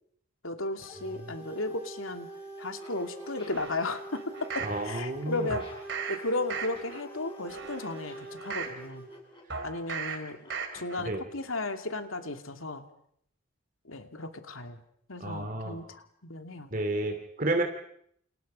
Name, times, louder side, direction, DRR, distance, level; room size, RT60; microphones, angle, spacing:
voice 1, 0.4-2.3 2.6-5.7 6.1-9.1 9.6-12.9 13.8-14.8 15.1-16.7, left 2 dB, 75° left, 6 dB, 2.7 m, -35 dB
sound 1, 0.8-9.2, right 3 dB, 10° right, 7.3 m, -44 dB
Laughter, 2.6-10.9, left 1 dB, 25° left, 7.0 m, -53 dB
sound 2, 3.5-4.8 5.5-6.2 6.5-7.0 7.5-8.8 9.5-10.2 10.5-11.0 11.4-11.5, right 6 dB, 55° right, 4.4 m, -37 dB
voice 2, 4.6-5.5 11.1-11.2 15.2-15.8 16.7-17.6, right 2 dB, 40° right, 5 dB, 2.5 m, -31 dB
29.5 x 29.0 x 5.5 m, 0.69 s
head